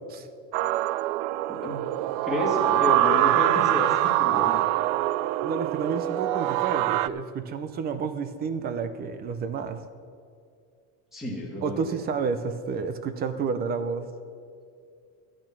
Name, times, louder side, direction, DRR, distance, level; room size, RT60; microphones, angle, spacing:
sound 1, 0.5-7.1, right 15 dB, 85° right, 0.5 m, -24 dB
voice 1, 1.5-1.8 2.2-4.6 11.1-11.8, left 1 dB, ahead, -3 dB, 2.1 m, -30 dB
voice 2, 5.4-9.8 11.6-14.1, right 5 dB, 25° right, 11 dB, 0.5 m, -30 dB
12.5 x 8.7 x 6.0 m, 2.3 s
cardioid pair, 170°, 37 cm